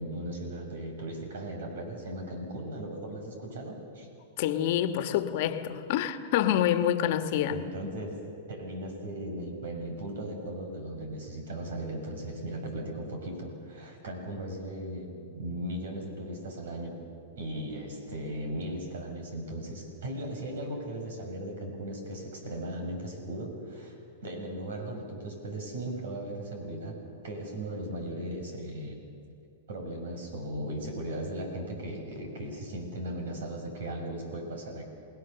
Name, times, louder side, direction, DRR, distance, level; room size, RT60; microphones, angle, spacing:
voice 1, 0.0-4.1 7.5-8.2 8.5-17.0 17.4-23.9 24.2-27.0 27.2-28.9 29.7-34.8, right 1 dB, 75° right, 6.4 m, -37 dB
voice 2, 4.4-7.6, left 11 dB, 60° left, 1.4 m, -27 dB
29.0 x 19.0 x 6.9 m
hypercardioid pair, 125°, 0 cm